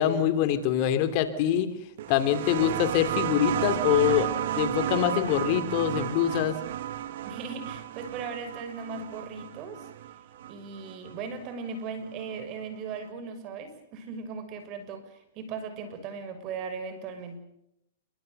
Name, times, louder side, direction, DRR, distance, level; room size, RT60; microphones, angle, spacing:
voice 1, 0.0-1.7 2.1-4.3 4.5-6.6, left 10 dB, 40° left, 10 dB, 2.9 m, -24 dB
sound 1, 2.0-11.3 12.4-12.5, right 12 dB, 60° right, 1.7 m, -33 dB
voice 2, 7.2-9.9 10.5-17.4, right 5 dB, 35° right, 10 dB, 6.3 m, -38 dB
29.5 x 23.5 x 6.8 m, 0.80 s
hypercardioid pair, 150°, 0 cm